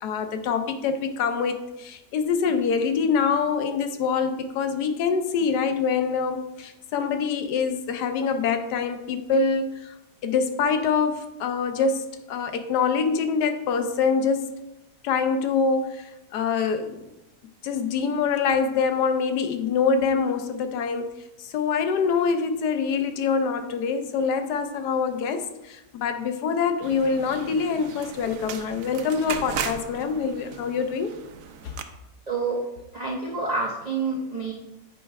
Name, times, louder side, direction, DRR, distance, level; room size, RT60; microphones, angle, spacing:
voice 1, 0.0-9.9 10.2-14.5 15.0-17.1 17.6-21.1 21.4-31.2 31.6-31.7, left 5 dB, 75° left, 8 dB, 1.1 m, -25 dB
sound 1, 26.8-31.8, right 7 dB, 70° right, 0.8 m, -36 dB
voice 2, 32.3-32.6 32.9-34.5, right 3 dB, 55° right, -2 dB, 0.4 m, -28 dB
9.0 x 3.2 x 4.6 m, 0.94 s
omnidirectional pair, 1.9 m